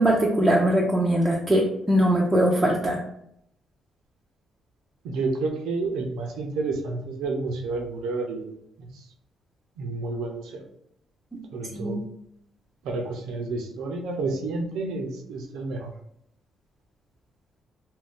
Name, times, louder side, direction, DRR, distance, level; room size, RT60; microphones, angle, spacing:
voice 1, 0.0-3.0 11.3-11.4 11.7-11.9, right 1 dB, 15° right, -3 dB, 0.5 m, -21 dB
voice 2, 5.0-9.1 9.8-10.7 11.5-12.0 12.8-15.9, right 3 dB, 90° right, 2 dB, 0.5 m, -30 dB
2.5 x 2.2 x 3.6 m, 0.74 s
cardioid pair, 90°, 0 cm